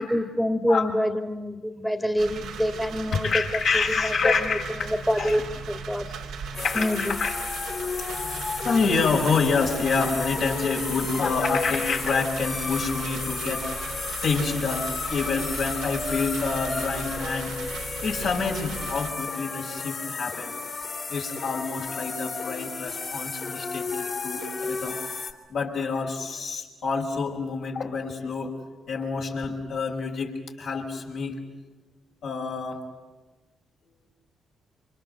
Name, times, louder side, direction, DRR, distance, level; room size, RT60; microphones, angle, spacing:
voice 1, 0.0-3.3 4.2-4.6 5.1-5.4 5.7-6.1 6.8-7.0, equal, ahead, 8 dB, 2.0 m, -25 dB
sound 1, 2.2-19.1, right 5 dB, 80° right, 2.2 m, -38 dB
voice 2, 3.1-5.4 6.4-7.4 8.1-14.0 14.2-17.6 18.0-20.5 21.1-25.0 25.5-28.6 28.9-31.4 32.2-32.8, left 4 dB, 70° left, -1 dB, 5.5 m, -28 dB
sound 2, 6.5-25.3, left 4 dB, 50° left, 3.5 m, -33 dB
27.5 x 25.0 x 7.9 m, 1.2 s
hypercardioid pair, 45°, 0 cm